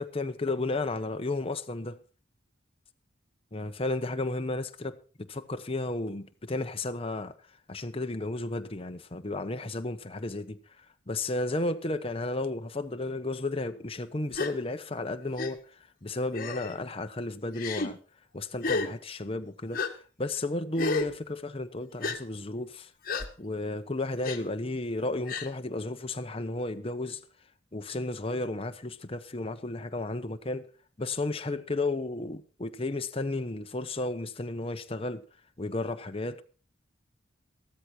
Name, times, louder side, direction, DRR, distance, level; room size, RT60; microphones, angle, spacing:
voice 1, 0.0-2.0 3.5-7.3 7.7-10.6 11.1-15.6 16.0-18.0 18.3-19.8 20.2-22.9 23.4-27.2 27.7-30.7 31.0-35.2 35.6-36.4, left 2 dB, 30° left, 1.0 m, -33 dB
Gasp, 14.3-14.5 15.4-15.5 16.3-16.7 17.6-17.9 18.6-18.9 19.7-19.9 20.8-21.1 22.0-22.2 23.1-23.3 24.2-24.4 25.3-25.5, left 3 dB, 50° left, 1.5 m, -31 dB
14.5 x 13.0 x 4.4 m
head